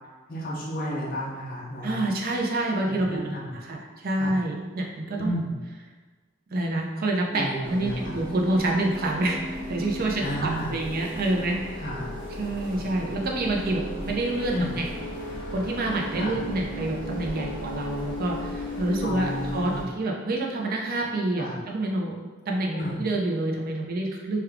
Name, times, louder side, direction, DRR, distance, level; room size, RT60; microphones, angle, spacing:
voice 1, 0.3-2.1 2.9-3.6 4.2-4.4 5.1-5.6 7.3-8.2 10.2-10.7 11.8-12.1 14.5-14.7 16.1-16.4 19.0-19.9 21.4-21.6 22.7-23.0, equal, 45° left, -5 dB, 0.6 m, -32 dB
voice 2, 1.8-3.4 3.6-5.3 6.5-11.9 12.4-14.9 15.5-22.2 22.5-24.4, right 2 dB, 50° right, -1 dB, 0.5 m, -27 dB
sound 1, 7.6-19.8, left 1 dB, 30° left, 1.4 m, -35 dB
3.5 x 2.3 x 3.4 m, 1.4 s
head